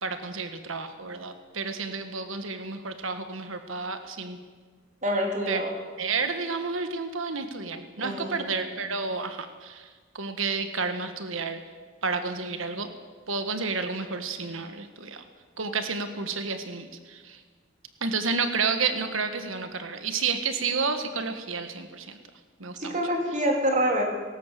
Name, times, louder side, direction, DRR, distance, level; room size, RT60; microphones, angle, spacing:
voice 1, 0.0-4.4 5.5-5.6 6.0-9.9 10.1-11.6 12.0-12.9 13.3-15.2 15.6-17.4 18.0-22.2 22.6-23.0, right 4 dB, 75° right, 8 dB, 1.6 m, -31 dB
voice 2, 5.0-5.7 8.0-8.6 22.8-24.0, equal, 40° right, 1 dB, 3.9 m, -26 dB
19.0 x 18.0 x 7.6 m, 1.5 s
head